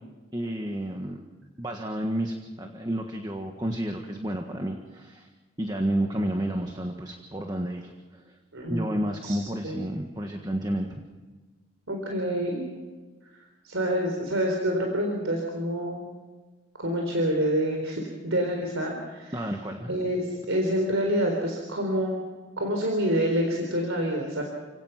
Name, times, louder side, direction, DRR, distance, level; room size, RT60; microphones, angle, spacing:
voice 1, 0.3-1.2 1.6-5.3 5.6-8.4 8.7-11.0 19.3-20.0, right 1 dB, 20° right, 3 dB, 1.5 m, -31 dB
voice 2, 8.5-9.0 9.2-9.4 9.6-9.8 11.9-12.6 13.6-16.0 16.8-19.4 19.9-22.2 22.6-24.4, equal, 85° right, 2 dB, 4.1 m, -27 dB
30.0 x 17.5 x 6.0 m, 1.3 s
head